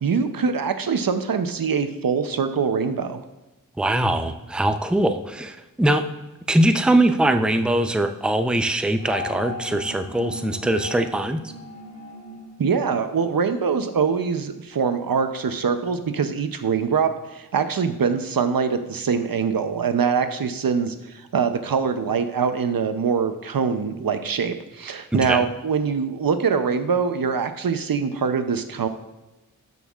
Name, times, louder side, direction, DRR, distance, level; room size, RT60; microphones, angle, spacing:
voice 1, 0.0-3.2 12.6-28.9, right 6 dB, 75° right, 9 dB, 0.6 m, -23 dB
voice 2, 3.8-6.0 6.5-11.4 25.1-25.5, right 1 dB, 5° right, 8 dB, 0.5 m, -21 dB
sound 1, 9.0-13.6, left 2 dB, 45° right, 1.8 m, -37 dB
13.0 x 5.5 x 2.4 m, 1.1 s
wide cardioid pair, 55°, 35 cm